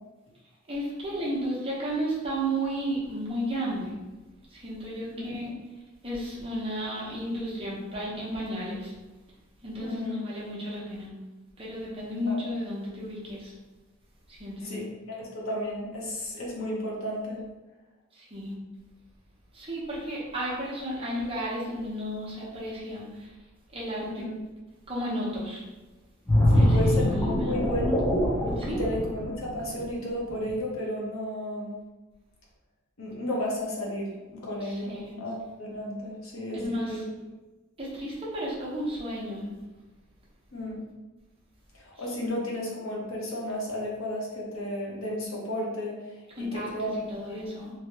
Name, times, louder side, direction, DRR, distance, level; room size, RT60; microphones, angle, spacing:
voice 1, 0.7-3.9 4.5-5.5 6.0-8.9 9.6-11.1 11.6-13.5 14.3-14.8 18.1-18.6 19.5-23.3 23.7-24.2 24.9-25.6 26.5-27.5 28.4-28.8 34.6-35.1 36.5-37.0 37.8-39.5 42.2-42.3 46.4-47.7, equal, 25° right, -6 dB, 0.8 m, -33 dB
voice 2, 9.8-10.2 12.3-12.4 14.6-17.4 24.0-24.4 26.5-28.0 28.8-31.8 33.0-37.0 40.5-40.8 41.7-47.0 47.3-47.4, equal, 80° left, -3 dB, 0.9 m, -33 dB
sound 1, 26.3-29.9 30.3-30.5, left 1 dB, 15° left, 0.6 m, -23 dB
3.1 x 2.8 x 2.8 m, 1.1 s
head